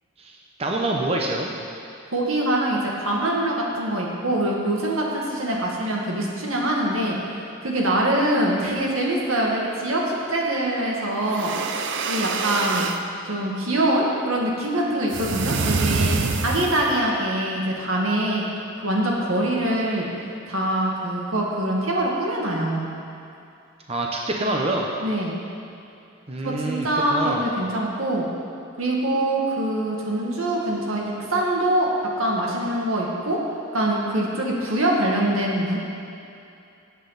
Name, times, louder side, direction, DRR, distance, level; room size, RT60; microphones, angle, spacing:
voice 1, 0.2-1.5 23.9-24.9 26.3-27.5, right 2 dB, 30° right, -1 dB, 0.9 m, -26 dB
voice 2, 2.1-7.2 7.6-11.5 12.1-12.9 13.3-20.1 20.5-22.9 25.0-25.4 26.4-28.3 28.8-31.9 32.2-33.4 33.7-35.8, right 1 dB, 80° right, -3 dB, 2.1 m, -24 dB
sound 1, 11.2-13.0 15.1-17.0, right 4 dB, 60° right, 0.6 m, -26 dB
18.0 x 8.2 x 4.1 m, 2.7 s
head